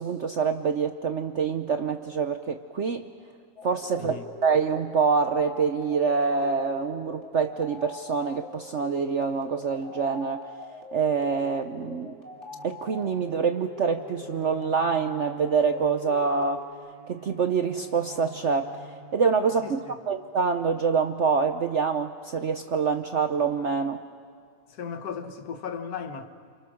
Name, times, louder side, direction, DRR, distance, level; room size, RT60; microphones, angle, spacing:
voice 1, 0.0-3.1 3.6-10.5 10.9-12.1 12.6-16.6 17.1-18.7 19.1-24.0, right 5 dB, 65° right, 0.7 m, -26 dB
sound 1, 3.6-16.7, left 2 dB, 35° left, 3.0 m, -43 dB
Bowed string instrument, 12.1-20.5, equal, 80° left, 4.4 m, -50 dB
voice 2, 19.6-20.0 24.7-26.3, left 6 dB, 55° left, 1.7 m, -36 dB
29.0 x 27.5 x 6.4 m
omnidirectional pair, 2.1 m